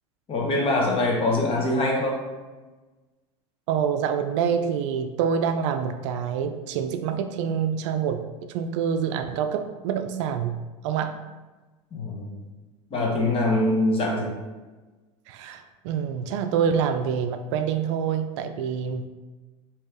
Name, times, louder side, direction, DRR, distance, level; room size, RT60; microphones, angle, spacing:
voice 1, 0.3-2.2 11.9-12.4 12.9-14.3, left 2 dB, 35° left, -1 dB, 1.1 m, -23 dB
voice 2, 3.7-10.6 10.8-11.1 15.3-19.1, right 7 dB, 70° right, 8 dB, 0.4 m, -26 dB
3.2 x 2.9 x 3.6 m, 1.2 s
hypercardioid pair, 95°, 16 cm